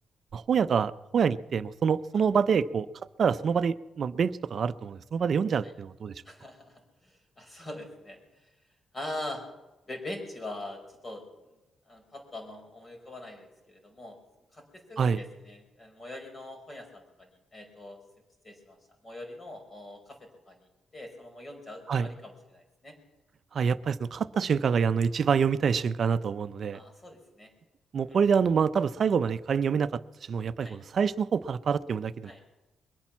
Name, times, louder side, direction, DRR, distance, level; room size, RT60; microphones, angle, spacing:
voice 1, 0.3-2.9 3.2-6.1 15.0-15.2 21.9-22.1 23.5-26.8 27.9-30.0 30.3-32.3, right 6 dB, 60° right, 15 dB, 0.6 m, -26 dB
voice 2, 6.2-8.2 8.9-9.4 9.9-11.2 11.9-14.2 14.5-18.0 18.4-18.8 19.0-20.6 20.9-23.0 26.7-27.5 28.1-28.2 30.6-30.8 32.2-32.4, left 1 dB, 30° left, 3 dB, 5.2 m, -42 dB
22.0 x 8.8 x 7.3 m, 1.1 s
cardioid pair, 80°, 0 cm